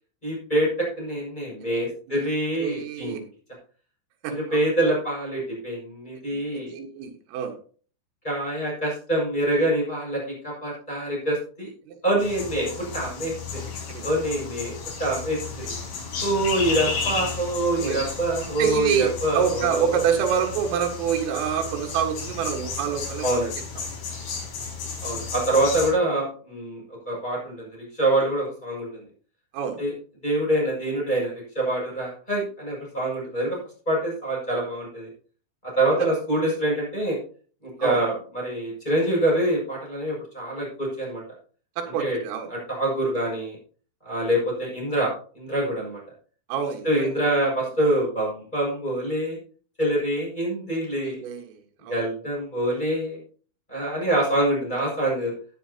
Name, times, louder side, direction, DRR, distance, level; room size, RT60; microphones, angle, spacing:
voice 1, 0.2-3.2 4.3-6.7 8.2-11.7 12.0-13.3 13.7-13.8 14.0-14.7 15.0-15.6 16.2-19.9 23.2-23.5 25.0-29.0 29.8-29.9 30.2-33.6 33.9-35.1 35.8-37.2 37.6-41.2 42.0-42.2 42.5-43.6 44.0-45.1 45.3-46.0 46.8-49.4 49.8-51.2 51.9-53.2 53.7-55.3, right 1 dB, 10° left, -4 dB, 5.8 m, -25 dB
voice 2, 2.6-3.2 4.2-4.6 6.3-7.5 11.9-12.0 13.9-14.1 16.3-16.4 17.8-18.1 18.6-23.4 29.5-29.8 36.0-36.1 37.8-38.0 41.8-42.5 46.5-47.1 50.7-52.0, right 8 dB, 85° right, 4 dB, 4.1 m, -27 dB
sound 1, 12.2-25.9, left 5 dB, 75° left, 6.3 m, -33 dB
15.5 x 9.2 x 2.8 m, 0.42 s
omnidirectional pair, 5.8 m